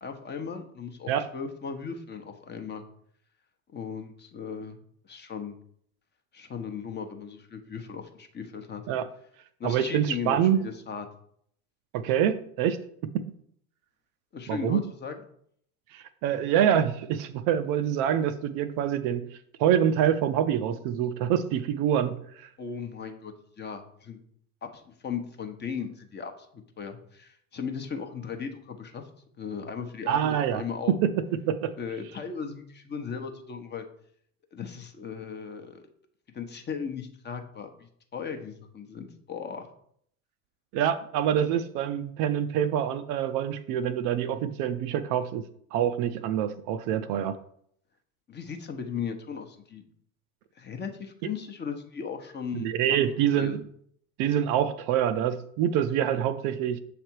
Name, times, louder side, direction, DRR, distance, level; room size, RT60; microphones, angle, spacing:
voice 1, 0.0-2.8 3.7-4.8 5.0-5.6 6.3-8.8 9.6-11.1 14.3-15.2 22.6-24.2 24.6-29.0 29.4-30.9 31.8-33.9 34.5-35.9 36.3-37.7 38.1-39.7 48.3-49.9 50.6-52.7 53.3-53.6, left 6 dB, 25° left, 0.8 m, -37 dB
voice 2, 9.6-10.6 11.9-12.8 14.5-14.8 15.9-19.2 19.6-22.5 30.1-30.6 30.9-31.1 31.5-31.7 40.7-45.4 45.7-47.4 52.5-53.6 54.2-56.8, right 9 dB, 50° right, 0.5 m, -26 dB
7.0 x 3.3 x 4.5 m
hypercardioid pair, 80°, 43 cm